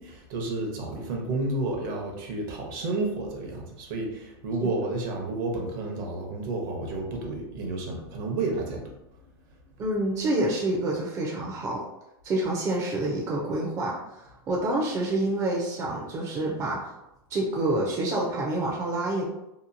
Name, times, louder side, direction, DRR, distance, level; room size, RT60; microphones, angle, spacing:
voice 1, 0.0-8.9, right 2 dB, 60° right, 1 dB, 0.8 m, -31 dB
voice 2, 9.8-11.8 12.2-16.9 17.3-19.2, right 2 dB, 25° right, -2 dB, 0.4 m, -28 dB
2.8 x 2.2 x 2.5 m, 0.90 s
supercardioid pair, 135°, 13 cm